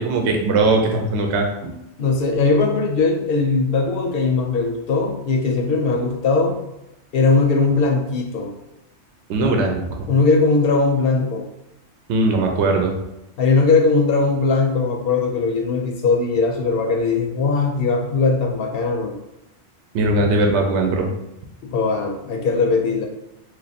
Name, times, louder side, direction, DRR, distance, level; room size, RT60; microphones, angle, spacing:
voice 1, 0.0-1.7 9.3-10.1 12.1-13.0 19.9-21.1, right 2 dB, 75° right, 2 dB, 0.9 m, -19 dB
voice 2, 2.0-6.6 7.1-8.5 10.1-11.4 13.4-19.1 20.2-20.3 21.6-23.1, left 4 dB, 65° left, 2 dB, 0.7 m, -19 dB
3.1 x 2.3 x 4.1 m, 0.88 s
omnidirectional pair, 1.2 m